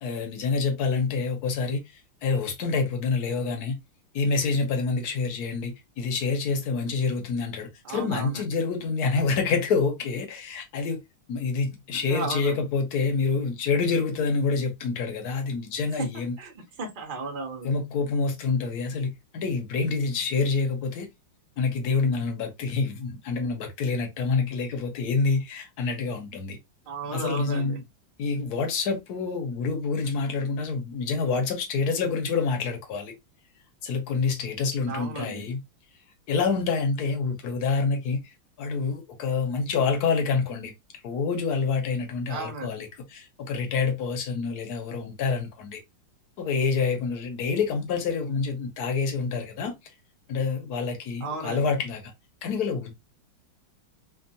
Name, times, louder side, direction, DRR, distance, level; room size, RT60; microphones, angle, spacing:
voice 1, 0.0-3.8 4.1-11.0 11.3-16.4 17.6-21.1 21.6-26.6 27.1-27.8 28.2-33.1 33.8-35.6 36.3-40.7 41.0-45.8 46.4-49.9 50.3-52.0 52.4-52.9, left 4 dB, 65° left, 1.0 m, -27 dB
voice 2, 7.8-8.4 12.1-12.6 16.0-16.1 16.4-17.7 26.9-27.8 34.8-35.4 42.3-42.8 51.2-51.7, right 3 dB, 75° right, 0.4 m, -34 dB
3.5 x 2.0 x 2.6 m
omnidirectional pair, 2.3 m